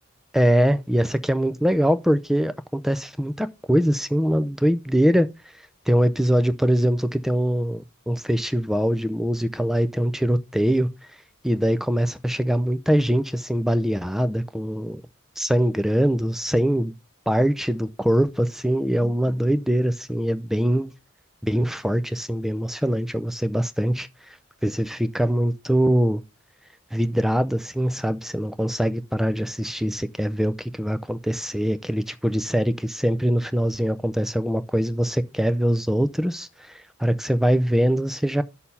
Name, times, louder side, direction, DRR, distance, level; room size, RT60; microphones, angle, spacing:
voice 1, 0.3-5.3 5.9-10.9 11.4-15.0 15.4-16.9 17.3-20.9 21.4-24.1 24.6-26.2 26.9-38.4, equal, ahead, 0.4 m, -23 dB
6.6 x 5.7 x 5.4 m
head